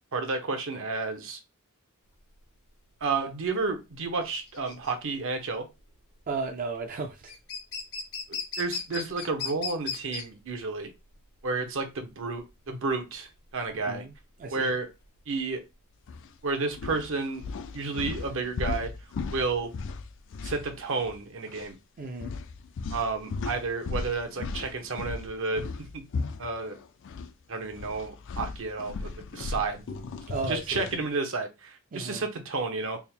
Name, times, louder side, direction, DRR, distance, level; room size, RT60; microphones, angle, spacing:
voice 1, 0.1-1.4 3.0-5.7 8.3-10.9 11.4-14.0 14.5-14.9 15.3-15.6 16.4-17.5 17.7-18.9 19.3-19.7 20.4-21.8 22.9-26.1 26.4-26.8 27.5-29.9 30.5-33.0, right 3 dB, 65° right, 0.8 m, -31 dB
sound 1, 2.1-18.5, left 5 dB, 80° left, 1.3 m, -40 dB
voice 2, 6.3-7.3 13.9-14.1 14.4-14.7 22.0-22.3 30.3-30.8 31.9-32.2, right 3 dB, 40° right, 0.4 m, -34 dB
sound 2, 16.1-16.3 16.7-21.2 21.5-21.7 22.2-27.3 27.6-31.1, left 4 dB, 60° left, 0.4 m, -37 dB
3.6 x 2.1 x 4.3 m
head